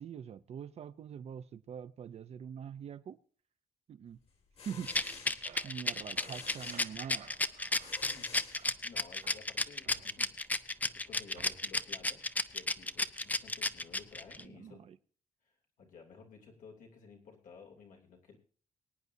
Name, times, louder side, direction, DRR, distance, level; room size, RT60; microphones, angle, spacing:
voice 1, 0.0-3.2 3.9-4.2 4.7-4.9 5.3-7.3 14.4-15.0, right 8 dB, 50° right, 11 dB, 0.5 m, -44 dB
sound 1, 4.3-9.2, left 5 dB, 50° left, 2.0 m, -52 dB
Rattle, 4.9-14.4, left 2 dB, 10° left, 0.4 m, -32 dB
sound 2, 5.1-8.9 9.2-10.6 11.3-11.9, right 8 dB, 80° right, 2.2 m, -57 dB
voice 2, 8.1-10.3 10.9-12.2 12.5-14.8 15.4-18.4, left 5 dB, 85° left, 0 dB, 3.0 m, -55 dB
24.0 x 9.5 x 2.7 m, 0.43 s
wide cardioid pair, 175°, 13 cm